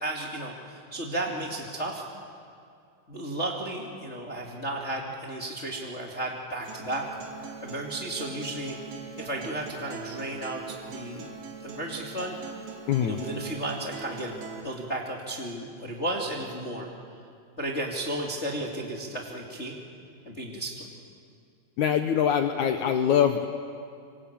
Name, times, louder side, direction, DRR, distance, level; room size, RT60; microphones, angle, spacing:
voice 1, 0.0-2.0 3.1-7.1 7.6-8.8 9.2-11.3 11.6-12.4 13.0-14.4 14.6-16.9 17.6-19.8 20.2-20.9, right 1 dB, 25° left, 0 dB, 1.5 m, -33 dB
Acoustic guitar, 6.6-14.6, right 5 dB, 65° right, 4.1 m, -42 dB
voice 2, 12.9-13.2 21.8-23.5, left 9 dB, 80° left, 6 dB, 1.7 m, -23 dB
26.5 x 25.0 x 8.7 m, 2.3 s
omnidirectional pair, 4.8 m